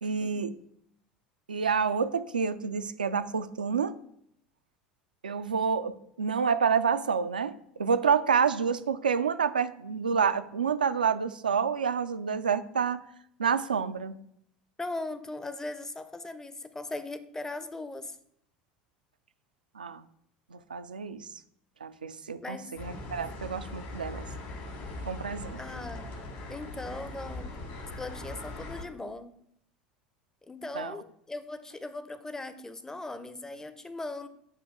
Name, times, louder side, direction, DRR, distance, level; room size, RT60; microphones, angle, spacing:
voice 1, 0.0-0.5 1.5-4.0 5.2-13.0 13.4-14.1 19.8-20.0 20.5-21.3 21.8-24.2 25.1-25.6 30.7-30.9, right 6 dB, 80° right, 12 dB, 0.3 m, -28 dB
voice 2, 14.8-18.2 22.4-22.7 25.5-26.1 26.5-27.5 28.0-29.3 30.4-34.3, left 2 dB, 10° left, 11 dB, 0.5 m, -39 dB
sound 1, 22.8-28.8, left 2 dB, 60° left, 1.7 m, -40 dB
7.3 x 2.9 x 4.9 m, 0.71 s
figure-of-eight pair, 70°, 5 cm